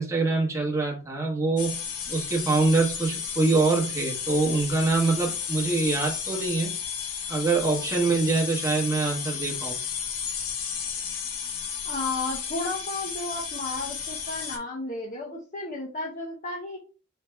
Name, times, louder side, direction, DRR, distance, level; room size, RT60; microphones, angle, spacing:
voice 1, 0.0-6.8 7.3-9.8, right 3 dB, 15° right, -2 dB, 1.0 m, -25 dB
sound 1, 1.6-14.6, left 7 dB, 85° left, 0.8 m, -33 dB
voice 2, 11.8-16.8, left 2 dB, 35° left, -1 dB, 0.7 m, -33 dB
3.3 x 2.8 x 4.4 m, 0.35 s
head